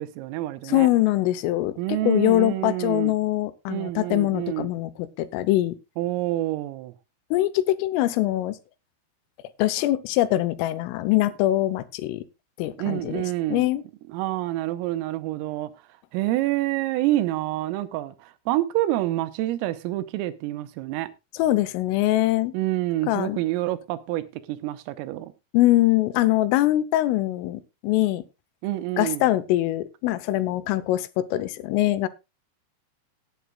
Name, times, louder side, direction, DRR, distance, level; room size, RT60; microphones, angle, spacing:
voice 1, 0.0-0.9 1.8-3.1 3.7-4.7 6.0-6.9 12.8-13.7 14.1-15.7 16.1-21.1 22.5-25.3 28.6-29.3, right 16 dB, 90° right, 3.5 m, -27 dB
voice 2, 0.7-1.7 2.0-4.9 5.2-5.8 7.3-8.6 9.6-12.2 12.6-13.2 13.5-13.8 21.3-22.5 23.1-23.4 25.5-28.2 29.0-32.1, left 15 dB, 80° left, 3.3 m, -23 dB
18.0 x 9.3 x 2.3 m
omnidirectional pair, 5.8 m